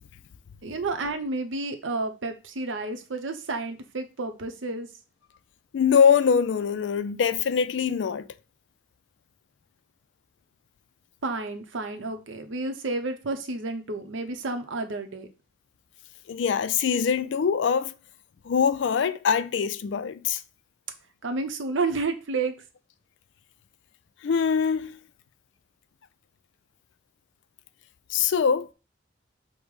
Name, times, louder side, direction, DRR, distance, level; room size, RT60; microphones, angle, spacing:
voice 1, 0.6-4.9 11.2-15.3 21.2-22.5, right 3 dB, 90° right, 0.7 m, -30 dB
voice 2, 5.7-8.3 16.3-17.9 18.4-20.4 24.2-25.0 28.1-28.7, left 6 dB, 70° left, 0.3 m, -23 dB
5.2 x 2.1 x 4.7 m
head